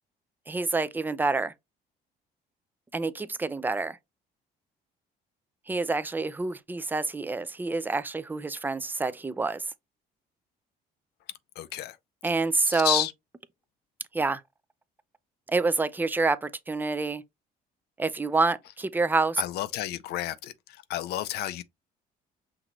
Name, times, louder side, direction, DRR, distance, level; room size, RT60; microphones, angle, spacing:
voice 1, 0.5-1.5 2.9-4.0 5.7-9.6 12.2-13.1 14.1-14.4 15.5-17.2 18.0-19.4, right 3 dB, 10° right, 0.3 m, -27 dB
voice 2, 11.6-12.0 12.7-13.1 19.4-20.5 20.9-21.6, left 14 dB, 75° left, 0.4 m, -30 dB
5.8 x 2.9 x 2.5 m
cardioid pair, 110°, 17 cm